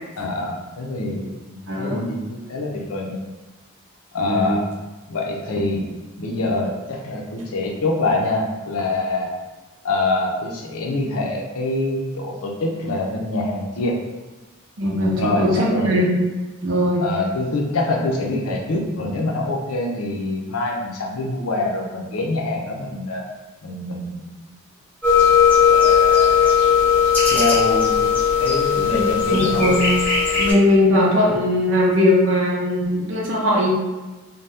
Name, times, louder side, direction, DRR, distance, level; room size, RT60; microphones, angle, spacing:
voice 1, 0.2-3.2 4.1-4.6 5.1-5.9 6.2-9.3 9.8-14.0 15.2-15.9 17.0-23.2 23.6-24.4 25.7-26.6 27.3-28.1 28.4-29.7, left 2 dB, 85° left, 0 dB, 0.6 m, -25 dB
voice 2, 1.7-2.1 4.2-4.6 14.8-16.1 16.6-17.0 29.0-29.9 30.4-33.8, left 1 dB, 60° right, -4 dB, 0.6 m, -19 dB
sound 1, 25.0-30.5, left 7 dB, 5° left, 0.6 m, -17 dB
2.7 x 2.2 x 3.3 m, 1.2 s
head